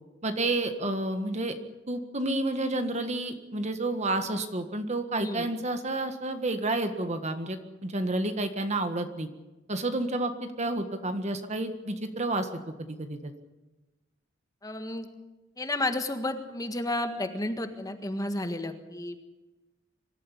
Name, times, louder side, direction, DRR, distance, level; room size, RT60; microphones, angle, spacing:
voice 1, 0.2-1.6 1.9-9.3 9.7-10.3 10.6-12.5 12.8-13.3, right 2 dB, 35° right, 7 dB, 1.7 m, -30 dB
voice 2, 14.6-15.1 15.6-19.1, left 1 dB, 20° left, 7 dB, 1.6 m, -32 dB
24.5 x 13.5 x 10.0 m, 1.1 s
head